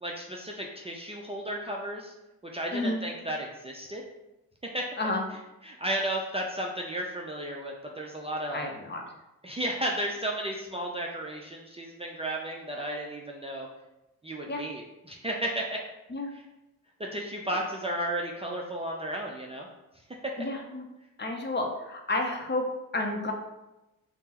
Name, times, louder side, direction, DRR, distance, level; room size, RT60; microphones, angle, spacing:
voice 1, 0.0-2.1 2.4-4.0 4.7-4.9 5.6-8.7 9.4-13.7 14.2-15.8 16.3-16.4 17.0-19.7 20.2-20.3, right 1 dB, 15° right, -2 dB, 0.4 m, -33 dB
voice 2, 8.5-9.0 14.5-14.6 16.1-16.3 20.4-20.8 21.2-23.3, left 2 dB, 30° left, 2 dB, 0.6 m, -31 dB
3.4 x 2.0 x 2.9 m, 0.97 s
supercardioid pair, 55°, 38 cm